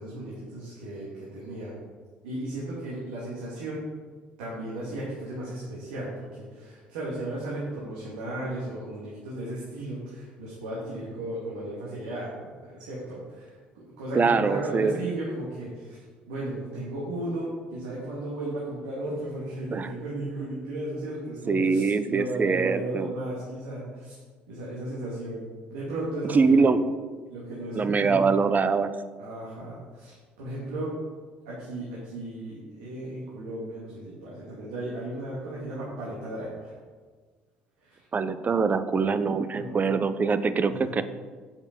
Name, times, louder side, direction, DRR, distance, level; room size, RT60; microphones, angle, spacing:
voice 1, 0.0-1.8 2.2-3.9 4.4-13.5 13.8-16.0 16.3-24.2 24.5-26.7 27.3-28.2 29.2-30.9 31.5-36.7 37.8-38.0 39.5-39.8 40.8-40.9, right 1 dB, 85° right, -6 dB, 2.4 m, -35 dB
voice 2, 14.1-15.0 19.7-19.9 21.5-23.1 26.2-26.8 27.7-28.9 38.1-41.0, right 4 dB, 35° right, 12 dB, 0.7 m, -23 dB
8.1 x 7.1 x 5.4 m, 1.5 s
hypercardioid pair, 60°, 5 cm